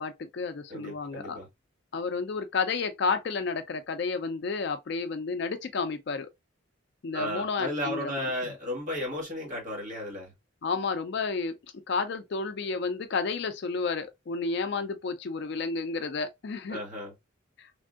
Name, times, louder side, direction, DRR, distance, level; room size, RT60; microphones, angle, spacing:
voice 1, 0.0-1.4 1.9-6.3 7.0-8.3 10.6-11.6 11.9-16.8 17.6-17.7, left 4 dB, 55° left, 0.4 m, -31 dB
voice 2, 0.7-1.5 7.1-10.3 16.7-17.1, left 1 dB, 40° right, 1.4 m, -34 dB
3.4 x 2.6 x 2.3 m
head